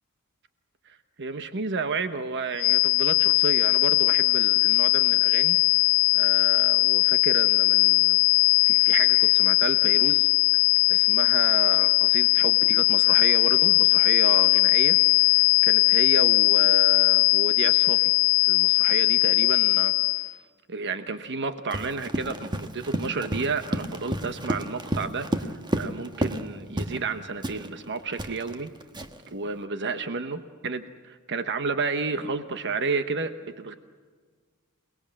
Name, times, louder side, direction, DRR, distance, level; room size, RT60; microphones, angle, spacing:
voice 1, 0.9-5.6 6.1-8.2 8.6-10.3 10.9-15.0 15.2-18.1 18.4-19.9 20.2-20.4 20.7-28.7 29.3-33.7, right 4 dB, 55° right, 9 dB, 1.1 m, -31 dB
sound 1, 2.6-20.3, left 27 dB, 65° left, 0.9 m, -20 dB
Run, 21.7-26.5 26.8-27.0 27.4-29.3, right 1 dB, 20° right, 1.3 m, -31 dB
28.0 x 20.0 x 7.6 m, 1.5 s
head